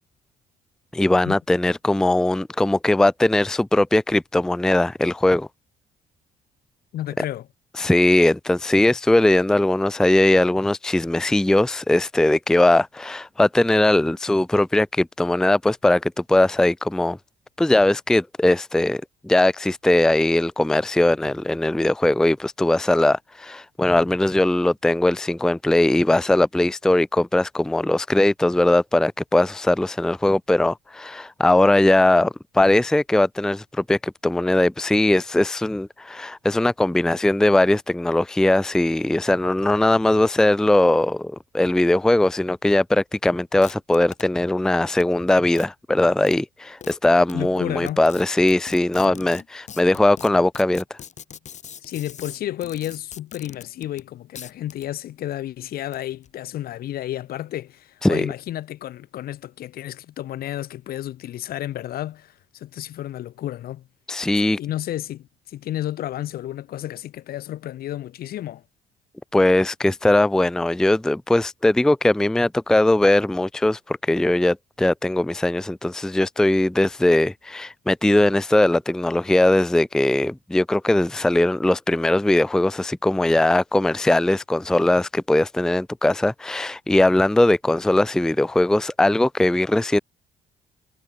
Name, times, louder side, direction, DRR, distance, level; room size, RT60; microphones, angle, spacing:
voice 1, 0.9-5.5 7.8-17.2 17.6-50.8 58.0-58.3 64.1-64.6 69.3-90.0, left 1 dB, 5° left, 0.5 m, -20 dB
voice 2, 6.9-7.5 47.3-48.0 49.0-49.2 51.8-63.9 64.6-68.6, left 13 dB, 65° left, 1.3 m, -32 dB
sound 1, 43.6-44.2 45.0-45.1 45.6-45.7 46.3-46.4 46.8-46.9 47.3-47.4 47.9-54.1 54.4-54.9 55.8-56.3, left 8 dB, 45° left, 2.6 m, -41 dB
cardioid pair, 110°, 17 cm